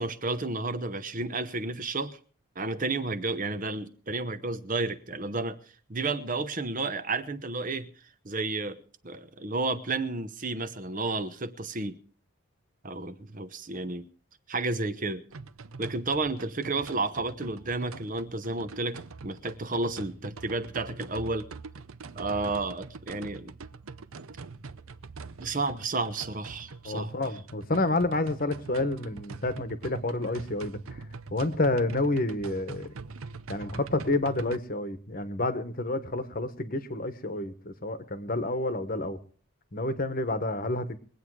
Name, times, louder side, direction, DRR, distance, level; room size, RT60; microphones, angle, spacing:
voice 1, 0.0-2.2 2.6-5.6 5.9-7.9 8.2-8.8 9.0-12.0 12.8-14.1 14.5-15.2 15.8-21.5 22.1-23.5 25.4-27.1, right 3 dB, 35° right, 0.9 m, -31 dB
sound 1, 15.3-34.6, right 4 dB, 70° right, 0.7 m, -44 dB
voice 2, 26.8-32.9 33.5-39.2 39.7-41.0, left 2 dB, 40° left, 1.2 m, -29 dB
22.0 x 8.6 x 4.8 m
head